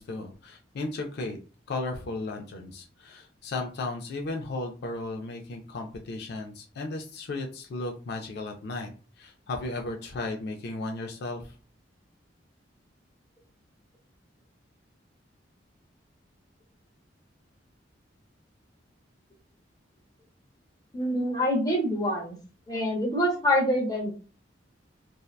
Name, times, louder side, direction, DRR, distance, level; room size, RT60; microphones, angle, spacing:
voice 1, 0.0-1.4 1.7-8.9 9.2-11.5, left 2 dB, 60° left, 3 dB, 0.4 m, -35 dB
voice 2, 20.9-22.4 22.7-24.1, equal, 20° left, -1 dB, 0.7 m, -26 dB
2.6 x 2.1 x 2.2 m, 0.36 s
head